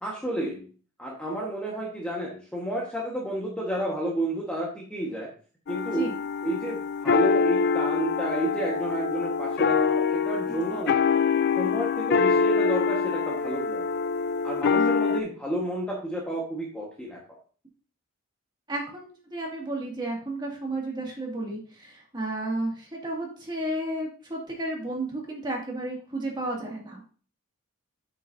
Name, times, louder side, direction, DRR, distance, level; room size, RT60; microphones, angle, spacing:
voice 1, 0.0-0.6 1.0-5.3 5.7-6.1 6.4-6.8 7.0-11.0 11.6-13.8 14.4-17.2, right 1 dB, 5° left, -4 dB, 1.4 m, -31 dB
sound 1, 5.7-15.2, left 5 dB, 50° left, 0.4 m, -25 dB
voice 2, 10.5-10.8 14.7-14.9 18.7-27.0, right 1 dB, 20° right, -2 dB, 2.1 m, -32 dB
8.0 x 7.9 x 2.7 m, 0.40 s
head